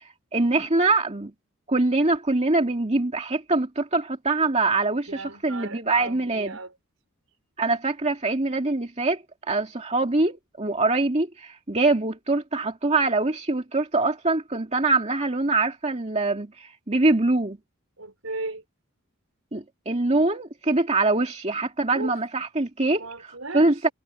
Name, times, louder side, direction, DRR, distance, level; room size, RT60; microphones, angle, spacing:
voice 1, 0.3-1.3 1.7-6.6 7.6-17.6 19.5-23.0 23.5-23.9, right 2 dB, 30° right, 2.3 m, -24 dB
voice 2, 5.1-6.8 18.0-18.6 21.9-22.1 22.9-23.9, right 3 dB, 75° right, 5.8 m, -36 dB
head